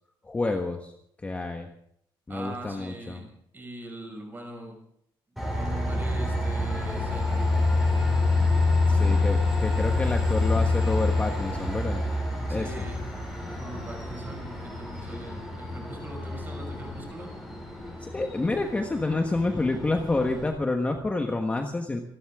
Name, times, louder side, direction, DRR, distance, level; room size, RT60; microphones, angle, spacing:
voice 1, 0.2-0.9 1.2-1.7 2.3-3.2 8.9-12.0 12.5-12.9 18.0-22.0, left 2 dB, 15° left, 3 dB, 1.3 m, -28 dB
voice 2, 2.3-3.3 3.5-4.8 5.5-7.6 9.0-9.3 12.5-13.0 13.5-17.3, right 1 dB, 20° right, 2 dB, 5.9 m, -41 dB
Train, 5.4-20.5, left 2 dB, ahead, 6.8 m, -27 dB
27.5 x 12.5 x 3.7 m, 0.69 s
cardioid pair, 150°, 9 cm